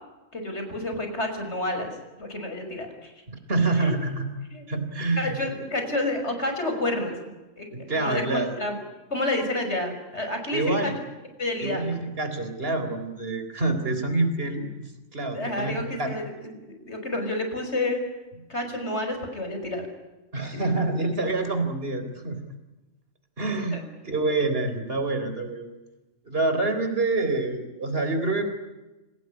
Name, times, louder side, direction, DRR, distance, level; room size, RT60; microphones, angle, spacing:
voice 1, 0.3-3.1 3.8-3.9 4.5-4.6 5.2-7.2 7.6-8.8 9.1-10.9 11.4-11.9 15.3-18.0 18.5-19.8 20.5-20.9 23.7-23.8, left 2 dB, 55° left, 5 dB, 6.4 m, -30 dB
voice 2, 3.3-4.3 4.7-5.3 7.7-8.5 10.5-11.0 11.6-14.7 15.1-16.1 20.3-22.4 23.4-23.8 24.0-25.7 26.2-28.5, right 2 dB, 45° right, 8 dB, 4.2 m, -26 dB
28.5 x 19.0 x 10.0 m, 1.1 s
omnidirectional pair, 1.4 m